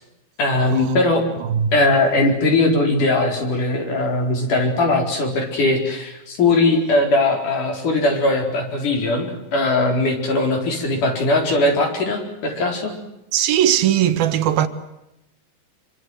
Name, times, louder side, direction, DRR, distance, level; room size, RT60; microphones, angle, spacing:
voice 1, 0.4-1.2 1.7-12.9, left 2 dB, 45° left, 5.6 m, -19 dB
voice 2, 1.4-1.7 13.3-14.7, right 10 dB, 65° right, 2.9 m, -19 dB
27.0 x 25.0 x 7.9 m
omnidirectional pair, 5.2 m